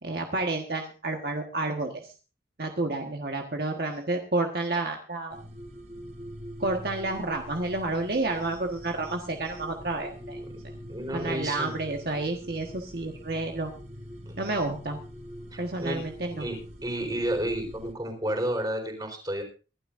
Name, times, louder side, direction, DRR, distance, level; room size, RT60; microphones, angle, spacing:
voice 1, 0.0-2.0 2.6-5.4 6.6-10.4 11.1-13.7 14.4-15.0 15.6-16.5, right 2 dB, 60° right, 2 dB, 1.5 m, -30 dB
sound 1, 5.3-17.9, equal, 40° right, 3.5 m, -43 dB
voice 2, 10.9-11.7 14.3-14.4 15.5-16.0 16.4-16.6 16.8-19.4, right 1 dB, 25° right, 3 dB, 4.5 m, -31 dB
25.0 x 12.0 x 2.6 m, 0.34 s
head